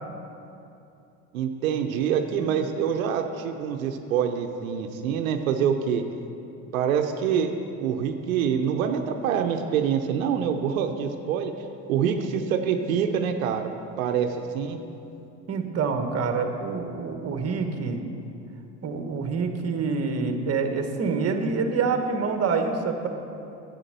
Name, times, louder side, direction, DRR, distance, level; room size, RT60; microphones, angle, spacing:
voice 1, 1.3-6.0 6.7-11.5 11.9-13.7 14.0-14.8, right 7 dB, 90° right, 5 dB, 0.8 m, -26 dB
voice 2, 15.5-18.0 18.8-23.1, right 4 dB, 35° right, 5 dB, 1.4 m, -26 dB
9.9 x 8.3 x 6.8 m, 2.7 s
supercardioid pair, 85°, 40 cm